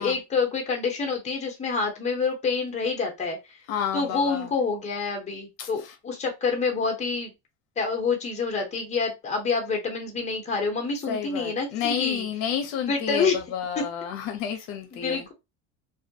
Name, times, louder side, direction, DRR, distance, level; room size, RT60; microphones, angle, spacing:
voice 1, 0.0-3.6 3.9-7.3 7.8-12.3 12.9-13.4 13.8-13.9 14.9-15.3, left 4 dB, 15° left, 0.7 m, -27 dB
voice 2, 3.7-4.5 5.6-5.7 11.1-15.3, left 8 dB, 60° left, 0.6 m, -30 dB
2.3 x 2.0 x 2.7 m
supercardioid pair, 130°, 43 cm